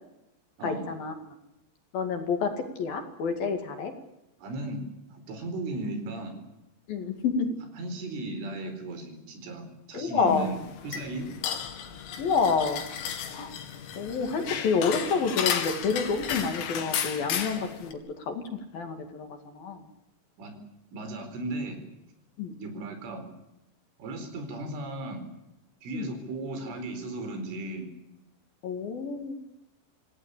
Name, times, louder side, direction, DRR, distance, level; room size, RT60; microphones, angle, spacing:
voice 1, 0.6-1.1 1.9-3.9 6.9-7.5 9.9-10.5 12.2-12.8 13.3-13.5 14.0-18.0 18.3-18.4 18.7-19.3 19.5-19.8 22.4-22.5 25.9-26.1 28.6-29.3, left 5 dB, 55° left, 6 dB, 3.7 m, -28 dB
voice 2, 4.4-4.8 5.1-6.4 7.8-10.6 10.8-11.3 20.4-20.6 20.9-21.8 22.5-23.3 24.0-25.2 25.8-27.9, right 2 dB, 75° right, 7 dB, 6.9 m, -36 dB
sound 1, 10.3-17.9, left 8 dB, 75° left, 4.6 m, -34 dB
27.0 x 17.5 x 8.4 m, 0.88 s
omnidirectional pair, 5.6 m